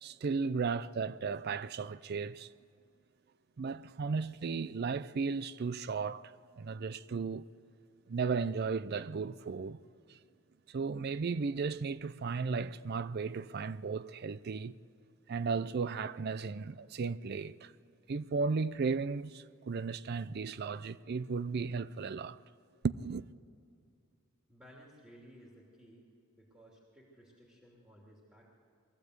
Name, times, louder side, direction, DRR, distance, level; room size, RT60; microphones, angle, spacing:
voice 1, 0.0-2.5 3.6-7.5 8.1-9.8 10.1-10.2 10.7-14.7 15.3-17.7 18.1-22.4 22.8-23.2, right 4 dB, 50° right, 0.4 m, -35 dB
voice 2, 24.5-26.0 26.3-28.6, equal, 5° right, 2.8 m, -57 dB
22.0 x 15.0 x 8.0 m
head